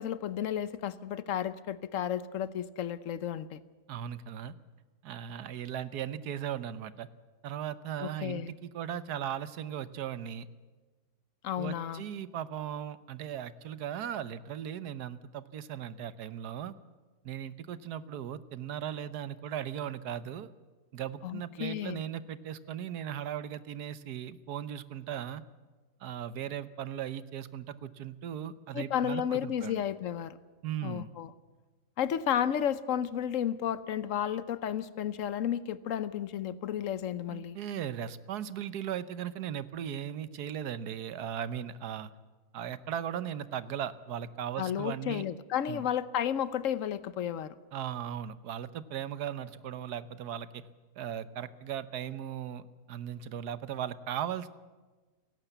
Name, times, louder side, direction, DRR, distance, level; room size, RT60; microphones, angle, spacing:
voice 1, 0.0-3.6 8.0-8.5 11.4-12.0 21.2-22.0 28.7-30.4 30.8-31.3 32.0-37.6 44.6-47.5, left 9 dB, 60° left, 15 dB, 1.0 m, -32 dB
voice 2, 3.9-4.5 5.0-7.1 7.4-10.5 11.6-16.7 17.2-20.5 20.9-25.4 26.0-29.8 30.6-31.1 37.3-42.1 42.5-45.2 45.7-45.8 47.7-50.6 51.0-54.5, right 9 dB, 70° right, 15 dB, 1.4 m, -37 dB
30.0 x 11.5 x 8.1 m, 1.3 s
omnidirectional pair, 1.8 m